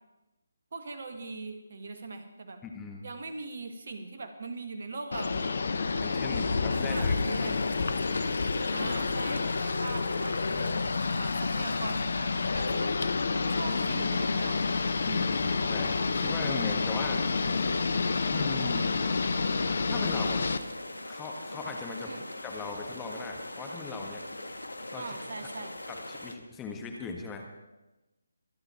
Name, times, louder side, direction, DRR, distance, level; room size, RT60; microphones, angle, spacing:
voice 1, 0.7-2.6 3.0-5.5 6.0-6.1 6.9-7.7 8.7-10.4 11.1-12.9 13.5-14.6 15.0-15.2 22.1-22.3 25.0-25.8, right 3 dB, 50° right, 7 dB, 2.0 m, -40 dB
voice 2, 2.6-3.0 6.0-7.5 10.5-10.7 15.0-17.2 18.3-18.9 19.9-20.4 21.1-22.1 22.4-24.2 24.9-25.2 25.9-27.5, left 4 dB, 10° left, 2 dB, 1.5 m, -39 dB
sound 1, 5.1-20.6, left 4 dB, 55° left, 0.9 m, -29 dB
sound 2, 6.7-26.4, left 1 dB, 75° left, 1.5 m, -42 dB
25.5 x 9.7 x 4.4 m, 1.0 s
figure-of-eight pair, 150°, 0 cm